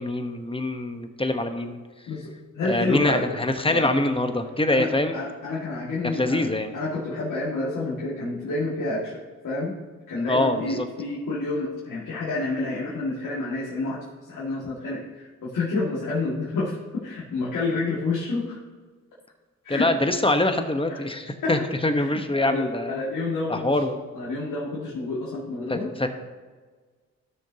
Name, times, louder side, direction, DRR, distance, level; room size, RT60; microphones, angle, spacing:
voice 1, 0.0-1.8 2.7-5.2 6.2-6.7 10.3-10.9 19.7-22.9 23.5-24.0 25.7-26.1, left 1 dB, 15° left, 6 dB, 1.1 m, -24 dB
voice 2, 2.1-3.3 3.7-3.9 4.7-9.8 10.1-18.6 19.6-19.9 20.9-21.0 21.4-21.6 21.9-23.8 24.1-25.9, left 3 dB, 80° left, -7 dB, 2.2 m, -29 dB
14.0 x 6.4 x 2.9 m, 1.4 s
cardioid pair, 60°, 32 cm